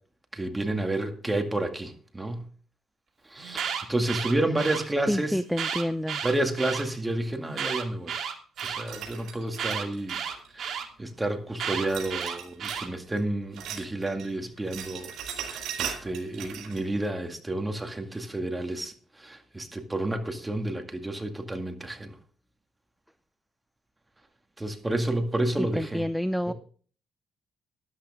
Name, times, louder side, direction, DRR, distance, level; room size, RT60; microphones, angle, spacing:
voice 1, 0.3-2.5 3.3-5.4 6.2-8.1 8.6-10.2 10.5-15.1 15.4-22.1 24.6-26.0 26.5-26.6, right 1 dB, 15° right, 5 dB, 2.1 m, -30 dB
Alarm, 3.4-4.8 5.5-6.8 7.5-8.8 9.6-10.8 11.6-12.9, right 7 dB, 65° right, 2.5 m, -32 dB
voice 2, 5.1-6.2 25.8-26.5, equal, ahead, 14 dB, 0.6 m, -28 dB
sound 1, 8.6-10.7 11.9-12.9 13.2-14.3 14.6-16.8, right 8 dB, 80° right, 4.5 m, -38 dB
13.0 x 11.5 x 3.6 m, 0.44 s
cardioid pair, 90°, 0 cm